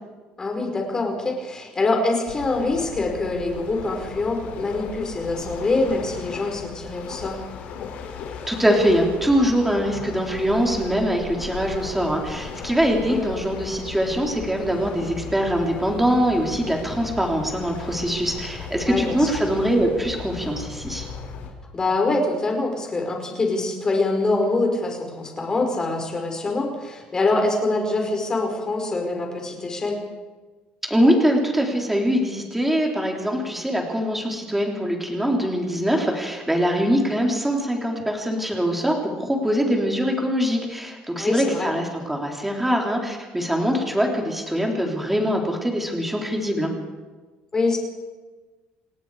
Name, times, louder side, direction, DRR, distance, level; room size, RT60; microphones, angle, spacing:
voice 1, 0.4-7.4 13.1-13.2 18.9-19.2 21.7-30.0 41.2-41.7 47.5-47.8, left 2 dB, 20° left, 2 dB, 5.4 m, -24 dB
sound 1, 2.3-21.5, left 6 dB, 60° left, 5.4 m, -36 dB
voice 2, 8.5-21.1 30.9-46.7, equal, 5° right, 0 dB, 3.7 m, -23 dB
28.5 x 18.5 x 5.0 m, 1.3 s
cardioid pair, 140°, 3 cm